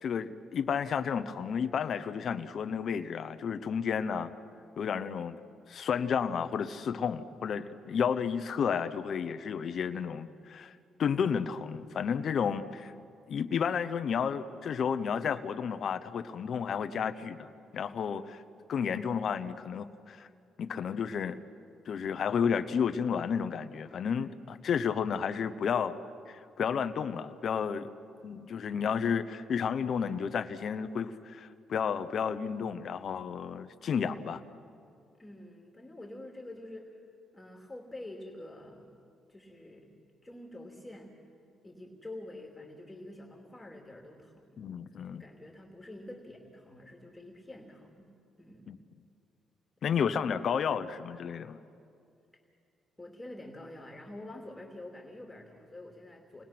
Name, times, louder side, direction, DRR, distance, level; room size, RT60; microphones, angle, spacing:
voice 1, 0.0-4.3 4.8-5.4 5.7-12.9 13.3-18.4 18.7-20.3 20.6-21.4 21.9-26.0 26.3-27.9 28.2-34.4 44.6-45.2 48.7-48.8 49.8-51.6, left 7 dB, 60° left, 12 dB, 0.9 m, -32 dB
voice 2, 35.2-37.0 37.3-39.0 39.3-39.9 40.2-41.1 41.6-44.6 45.0-48.1 48.4-48.7 53.0-56.4, left 1 dB, 15° left, 1 dB, 2.9 m, -47 dB
29.5 x 21.0 x 6.0 m, 2.5 s
cardioid pair, 90°, 0 cm